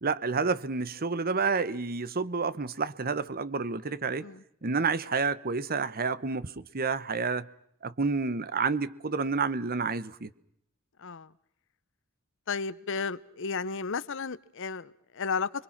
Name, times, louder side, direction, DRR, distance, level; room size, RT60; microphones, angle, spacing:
voice 1, 0.0-4.3 4.6-7.5 7.8-10.3, right 4 dB, 45° right, 1.0 m, -29 dB
voice 2, 11.0-11.3 12.5-15.6, left 5 dB, 60° left, 0.8 m, -33 dB
29.5 x 22.5 x 5.9 m
head